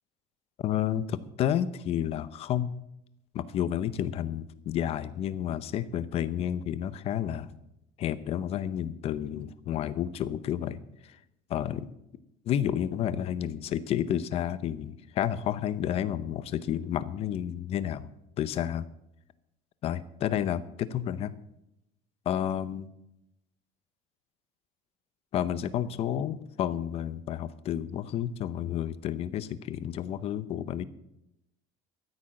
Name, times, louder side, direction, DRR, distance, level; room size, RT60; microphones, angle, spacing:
voice 1, 0.6-2.8 3.3-7.6 8.0-11.2 11.5-11.9 12.5-18.1 18.4-18.8 19.8-21.3 22.3-22.9 25.3-30.8, left 10 dB, 40° left, 16 dB, 0.7 m, -31 dB
14.0 x 8.7 x 6.5 m, 0.84 s
cardioid pair, 165°, 16 cm